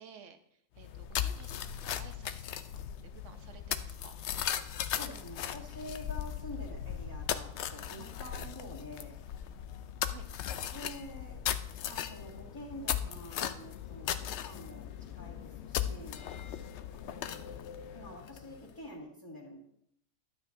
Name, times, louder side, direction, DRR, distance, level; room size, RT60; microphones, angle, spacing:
voice 1, 0.0-2.5 3.0-4.1 10.1-10.3, right 6 dB, 60° right, 8 dB, 0.9 m, -54 dB
sound 1, 0.8-18.7, left 10 dB, 75° left, 0.6 m, -38 dB
voice 2, 4.9-9.1 10.7-11.4 11.8-14.9 15.1-16.2 17.1-17.5 17.9-19.6, left 1 dB, 15° left, -8 dB, 1.8 m, -47 dB
12.5 x 9.0 x 2.6 m, 0.70 s
omnidirectional pair, 1.7 m